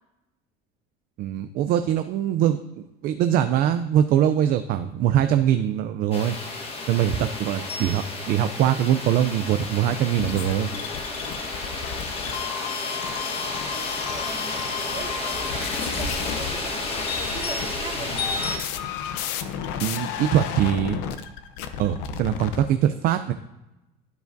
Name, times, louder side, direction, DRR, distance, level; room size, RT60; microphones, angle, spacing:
voice 1, 1.2-6.4 6.9-10.7 19.8-21.0 21.8-23.3, right 10 dB, 55° right, 9 dB, 0.5 m, -22 dB
sound 1, 6.1-18.6, left 3 dB, 30° left, 1.4 m, -31 dB
sound 2, 10.2-22.6, left 8 dB, 75° left, 0.7 m, -33 dB
voice 2, 13.7-18.3, right 5 dB, 35° right, 0 dB, 1.7 m, -40 dB
12.5 x 4.8 x 2.7 m, 0.96 s
cardioid pair, 130°, 19 cm